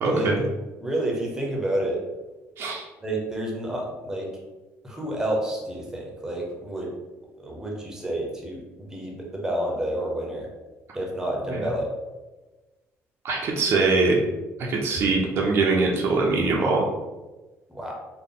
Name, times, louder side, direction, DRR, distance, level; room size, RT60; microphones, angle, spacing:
voice 1, 0.0-0.4 2.6-2.9 11.5-11.7 13.2-14.2 14.6-16.9, right 3 dB, 50° right, -1 dB, 0.5 m, -22 dB
voice 2, 0.8-2.0 3.0-4.3 4.8-6.9 7.4-8.6 8.9-10.5 10.9-11.9 17.7-17.9, right 1 dB, 10° right, -1 dB, 0.6 m, -29 dB
3.7 x 2.1 x 3.6 m, 1.2 s
cardioid pair, 160°, 5 cm